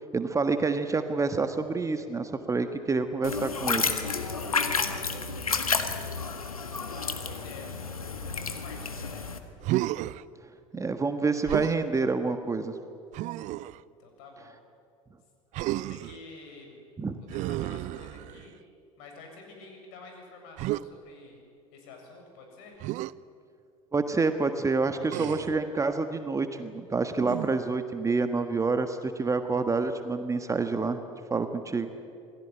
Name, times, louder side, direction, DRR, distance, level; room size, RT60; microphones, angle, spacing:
voice 1, 0.1-3.9 10.7-12.7 17.0-17.2 23.9-31.0 31.3-31.9, right 4 dB, 15° right, 8 dB, 1.5 m, -28 dB
sound 1, 3.2-9.4, left 5 dB, 80° left, 1.7 m, -31 dB
voice 2, 6.8-9.3 13.7-14.6 15.7-16.8 17.2-18.6 19.0-21.4 21.7-22.8, left 3 dB, 55° left, 2 dB, 7.3 m, -49 dB
Human voice, 9.6-10.2 11.5-11.8 13.1-13.8 15.5-16.2 17.3-18.5 20.6-20.9 22.8-23.1 25.1-25.6 27.2-27.7, right 16 dB, 45° right, 0.6 m, -32 dB
28.0 x 19.5 x 9.0 m, 2.5 s
figure-of-eight pair, 70°, 18 cm